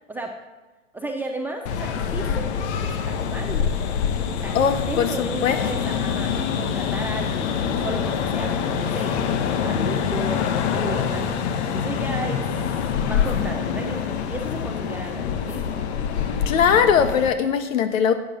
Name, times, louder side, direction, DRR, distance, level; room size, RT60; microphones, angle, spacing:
voice 1, 0.9-3.7 4.3-4.6 4.9-11.4 11.7-12.5 12.9-15.8, right 2 dB, 5° right, 1 dB, 0.3 m, -34 dB
sound 1, 1.7-17.3, left 7 dB, 55° left, 1.3 m, -25 dB
voice 2, 4.5-5.6 5.8-6.0 16.5-18.1, left 7 dB, 70° left, 8 dB, 1.5 m, -20 dB
11.5 x 8.4 x 7.4 m, 1.2 s
hypercardioid pair, 125°, 40 cm